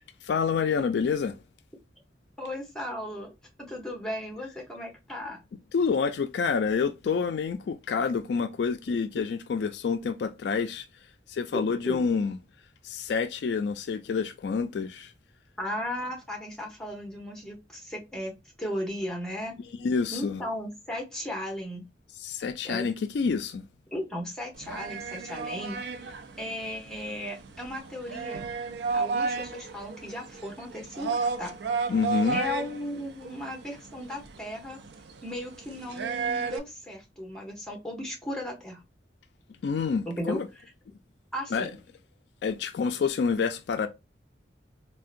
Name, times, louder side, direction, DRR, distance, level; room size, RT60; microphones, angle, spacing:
voice 1, 0.2-1.3 5.7-10.9 11.3-12.4 12.8-15.1 19.7-20.4 22.2-23.6 31.9-32.4 39.6-40.5 41.5-41.7 42.4-43.9, left 5 dB, 70° left, 0.3 m, -28 dB
voice 2, 2.4-5.4 11.5-12.1 15.6-19.5 20.1-21.8 22.6-22.9 23.9-25.8 26.4-28.5 28.9-31.5 32.3-34.8 35.2-38.8 40.1-40.4 41.3-41.8, left 1 dB, 5° left, 0.9 m, -36 dB
sound 1, 24.5-36.6, right 4 dB, 70° right, 0.4 m, -33 dB
3.5 x 2.1 x 2.4 m
head